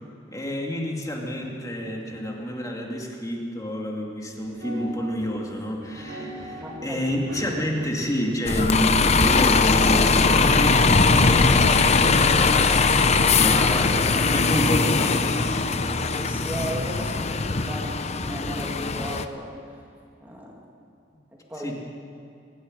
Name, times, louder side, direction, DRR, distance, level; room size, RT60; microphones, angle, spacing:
voice 1, 0.3-12.8 13.3-15.4 21.6-21.8, equal, 20° left, -1 dB, 2.4 m, -29 dB
sound 1, 4.4-17.7, right 1 dB, 85° right, 3.9 m, -43 dB
voice 2, 6.6-7.0 16.1-19.6 20.2-20.6 21.5-21.8, right 1 dB, 10° right, -2 dB, 1.9 m, -35 dB
Bus, 8.5-19.2, left 4 dB, 35° left, 0.7 m, -20 dB
23.0 x 11.5 x 9.9 m, 2.5 s
head